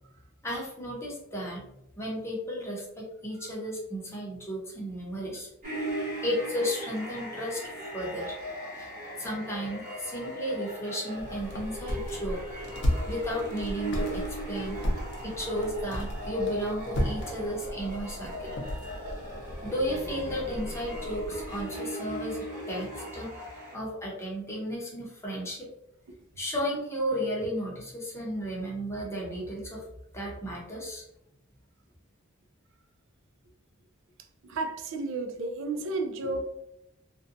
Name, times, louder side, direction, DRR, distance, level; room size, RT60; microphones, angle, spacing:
voice 1, 0.4-1.7 2.0-5.5 6.2-8.3 8.7-8.9 9.2-12.4 13.1-14.8 15.2-18.6 19.6-23.3 23.7-25.7 26.4-29.8 30.1-31.0, equal, 15° left, -4 dB, 0.7 m, -34 dB
sound 1, 5.6-23.7, right 1 dB, 40° right, 1.3 m, -38 dB
sound 2, 11.2-21.7, equal, 60° left, 0.6 m, -35 dB
voice 2, 34.4-36.5, right 2 dB, 65° right, 6 dB, 0.4 m, -32 dB
2.5 x 2.2 x 2.5 m, 0.83 s
head